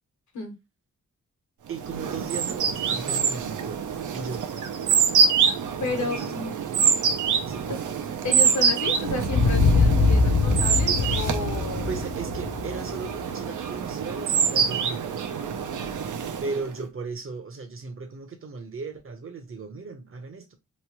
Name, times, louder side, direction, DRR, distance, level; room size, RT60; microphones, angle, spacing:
voice 1, 1.7-3.9 4.1-4.5 5.9-6.3 7.4-7.9 11.8-15.1 16.4-20.5, right 4 dB, 45° right, 0.7 m, -36 dB
sound 1, 1.8-16.7, right 6 dB, 85° right, 0.5 m, -26 dB
voice 2, 5.5-6.5 7.7-7.8 8.2-11.9 15.3-16.4, left 2 dB, 70° left, 1.1 m, -33 dB
sound 2, 9.2-13.8, left 4 dB, 55° left, 0.4 m, -23 dB
3.1 x 2.2 x 2.9 m
wide cardioid pair, 105°, 30 cm